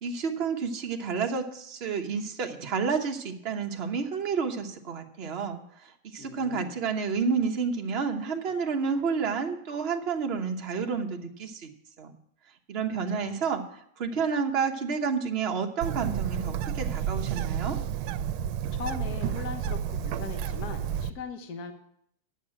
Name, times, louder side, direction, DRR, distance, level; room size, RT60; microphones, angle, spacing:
voice 1, 0.0-11.7 12.0-12.1 12.7-17.8, right 5 dB, 40° right, 4 dB, 0.9 m, -30 dB
voice 2, 6.2-6.8 12.9-13.4 18.7-21.7, left 5 dB, 50° left, 6 dB, 1.5 m, -39 dB
Bird, 15.8-21.1, right 9 dB, 80° right, 1.4 m, -31 dB
9.7 x 6.7 x 8.7 m, 0.71 s
omnidirectional pair, 2.3 m